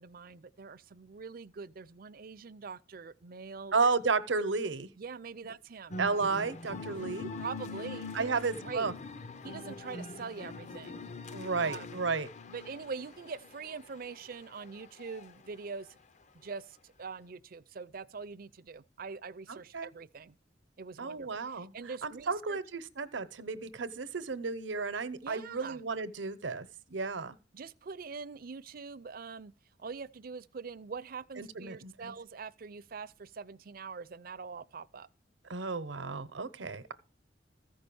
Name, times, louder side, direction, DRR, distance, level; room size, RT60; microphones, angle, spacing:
voice 1, 0.0-3.9 5.0-6.0 7.4-8.9 9.4-11.0 11.5-12.0 12.5-16.0 16.3-20.4 20.8-22.6 25.2-25.8 27.5-29.5 29.8-35.1, right 5 dB, 50° right, 0.5 m, -44 dB
voice 2, 3.7-4.9 5.4-5.5 6.0-7.3 8.1-8.9 11.3-12.3 19.5-19.9 21.0-21.7 22.0-27.4 31.4-32.1 35.5-36.9, right 4 dB, 85° right, 0.9 m, -33 dB
sound 1, 5.9-15.4, left 3 dB, 40° left, 0.6 m, -44 dB
14.5 x 5.4 x 6.9 m
head